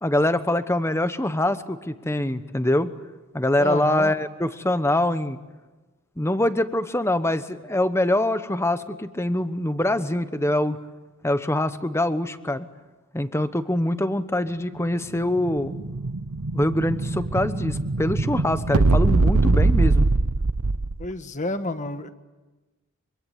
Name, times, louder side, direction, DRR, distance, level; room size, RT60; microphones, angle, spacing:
voice 1, 0.0-2.9 3.3-5.4 6.2-10.8 11.2-12.7 13.1-15.7 16.5-20.1, left 1 dB, 10° left, 11 dB, 1.0 m, -24 dB
voice 2, 3.6-4.1 21.0-22.1, left 2 dB, 35° left, 9 dB, 1.5 m, -29 dB
Explosion, 15.0-21.1, right 3 dB, 80° right, 0.9 m, -22 dB
25.5 x 25.0 x 9.4 m, 1.2 s
head